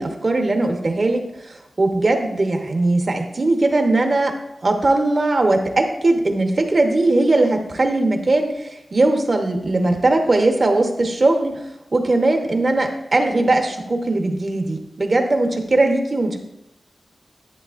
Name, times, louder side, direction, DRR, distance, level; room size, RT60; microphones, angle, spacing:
voice 1, 0.0-4.3 4.6-11.6 11.9-16.4, right 2 dB, 50° right, 4 dB, 1.1 m, -19 dB
11.0 x 7.8 x 2.6 m, 0.86 s
wide cardioid pair, 90°, 0 cm